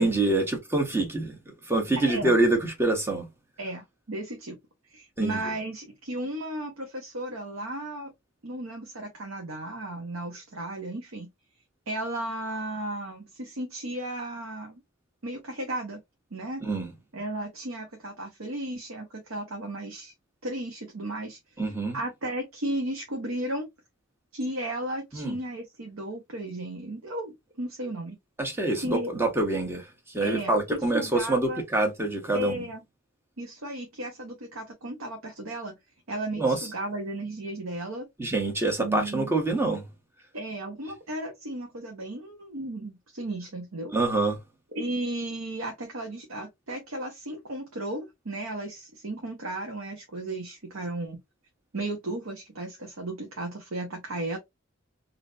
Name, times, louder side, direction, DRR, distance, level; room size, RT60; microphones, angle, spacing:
voice 1, 0.0-1.3 1.7-3.3 5.2-5.4 16.6-16.9 21.6-22.0 25.1-25.4 28.4-29.9 30.1-32.6 36.3-36.7 38.2-39.9 43.9-44.4, right 2 dB, 10° right, 1.1 m, -26 dB
voice 2, 2.0-2.4 3.6-4.6 4.9-8.1 8.4-11.3 11.9-14.8 15.2-16.0 16.3-16.6 17.1-20.1 20.4-21.4 21.9-23.7 24.3-28.2 28.8-29.1 30.2-31.6 32.3-32.8 33.4-35.7 36.1-38.0 38.8-39.3 40.3-43.9 44.7-51.2 51.7-54.4, right 1 dB, 85° right, 0.9 m, -34 dB
3.6 x 2.7 x 2.5 m
head